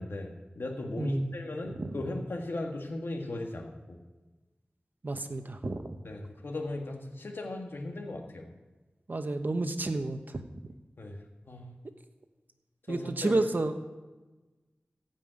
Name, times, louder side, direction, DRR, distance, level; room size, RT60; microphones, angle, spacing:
voice 1, 0.0-4.0 6.0-8.5 11.0-11.2 11.5-11.7 12.9-13.5, left 2 dB, 75° left, 2 dB, 1.7 m, -37 dB
voice 2, 1.0-1.4 1.8-2.0 5.0-6.0 9.1-10.4 12.9-13.7, right 2 dB, 55° right, 7 dB, 1.0 m, -31 dB
15.0 x 5.6 x 8.9 m, 1.2 s
wide cardioid pair, 85°, 4 cm